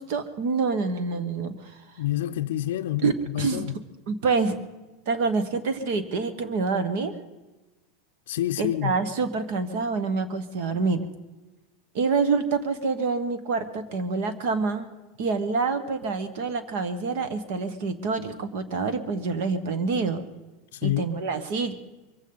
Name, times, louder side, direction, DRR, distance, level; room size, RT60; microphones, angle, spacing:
voice 1, 0.0-1.7 3.0-3.6 4.1-4.6 5.1-7.2 8.6-11.1 11.9-14.9 15.2-20.2 20.8-21.7, right 4 dB, 50° right, 1.3 m, -27 dB
voice 2, 2.0-3.8 8.3-8.9 20.7-21.1, left 13 dB, 80° left, 0.5 m, -28 dB
23.0 x 15.5 x 4.0 m
supercardioid pair, 180°, 0 cm